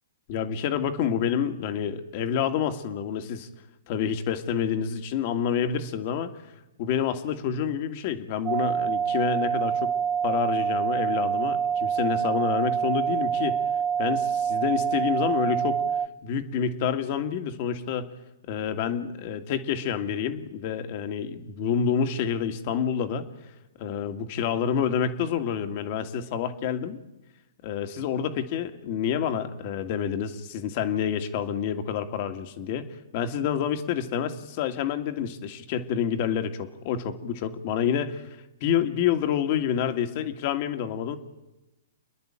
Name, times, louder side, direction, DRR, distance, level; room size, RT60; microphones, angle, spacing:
voice 1, 0.3-3.5 3.9-6.3 6.8-9.9 10.2-13.6 14.0-15.8 16.2-18.1 18.5-23.3 23.8-27.0 27.6-32.9 33.1-38.2 38.6-41.2, left 8 dB, 45° left, 8 dB, 2.0 m, -28 dB
sound 1, 8.5-16.1, right 7 dB, 25° right, 0.7 m, -26 dB
28.5 x 10.5 x 8.9 m, 1.0 s
hypercardioid pair, 125°, 0 cm